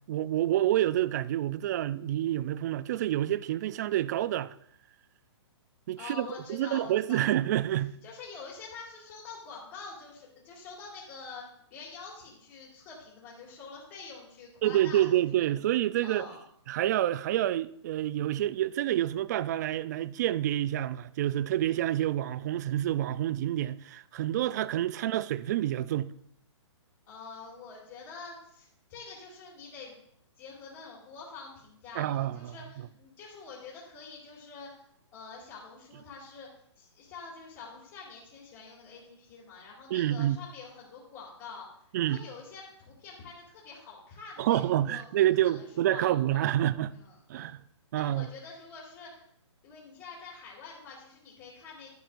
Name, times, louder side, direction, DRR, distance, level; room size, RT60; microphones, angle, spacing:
voice 1, 0.0-4.5 5.9-8.0 14.6-16.3 16.7-26.1 32.0-32.5 39.9-40.4 41.9-42.2 44.4-46.9 47.3-47.6 47.9-48.3, right 13 dB, 35° right, 0.3 m, -28 dB
voice 2, 6.0-7.3 8.0-11.4 11.7-15.5 16.0-16.4 27.1-30.0 30.4-34.8 35.1-36.5 36.8-41.7 42.0-46.5 46.9-47.5 47.9-49.2 49.6-51.9, left 4 dB, 40° left, 2.5 m, -46 dB
11.0 x 9.1 x 2.5 m
hypercardioid pair, 145°, 15 cm